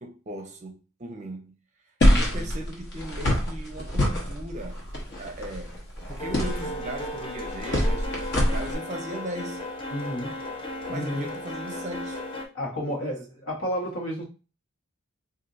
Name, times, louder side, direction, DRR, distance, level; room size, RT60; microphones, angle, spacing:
voice 1, 0.0-1.5 2.1-4.9 5.2-9.6 10.9-12.2 13.0-13.1, right 1 dB, 35° right, 0.6 m, -38 dB
sound 1, 2.0-8.7, equal, 50° left, 1.1 m, -26 dB
voice 2, 2.1-2.5 9.9-10.4 10.9-11.3 12.5-14.2, equal, 65° left, 1.3 m, -31 dB
sound 2, 4.9-5.3 5.6-12.5, left 1 dB, 25° left, 0.6 m, -35 dB
4.2 x 2.6 x 2.5 m
head